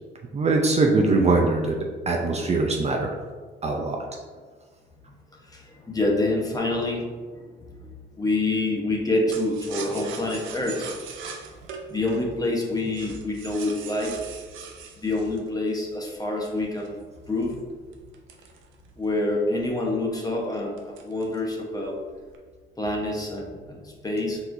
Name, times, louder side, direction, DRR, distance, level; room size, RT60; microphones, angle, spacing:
voice 1, 0.3-1.8 2.1-3.2 3.6-4.0, right 3 dB, 35° right, 1 dB, 0.5 m, -22 dB
voice 2, 5.5-7.1 7.3-7.5 7.8-10.9 11.9-14.1 15.0-17.0 17.3-17.5 19.0-22.0 22.8-24.4, left 2 dB, 20° left, -1 dB, 0.9 m, -27 dB
sound 1, 9.3-16.2 16.8-19.2 19.6-19.7 20.0-20.3 20.8-21.5 21.8-22.4, right 6 dB, 80° right, 0.6 m, -41 dB
4.3 x 4.1 x 2.6 m, 1.5 s
cardioid pair, 90°, 20 cm